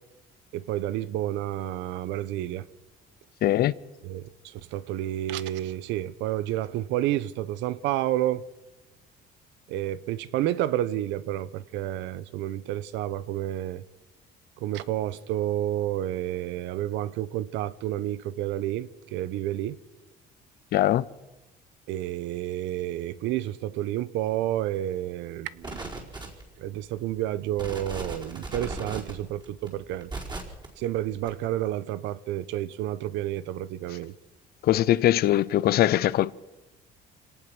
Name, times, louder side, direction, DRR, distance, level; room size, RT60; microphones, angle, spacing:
voice 1, 0.5-2.7 4.0-8.4 9.7-13.8 14.6-19.8 21.9-25.9 26.6-30.1 30.8-34.1, right 13 dB, 85° right, 1.0 m, -30 dB
voice 2, 3.4-3.7 20.7-21.0 34.6-36.3, left 13 dB, 60° left, 0.7 m, -21 dB
sound 1, 25.6-26.6 27.1-27.2 27.5-30.7 31.2-31.3, right 2 dB, 25° right, 4.7 m, -36 dB
26.5 x 18.5 x 6.1 m
cardioid pair, 130°, 18 cm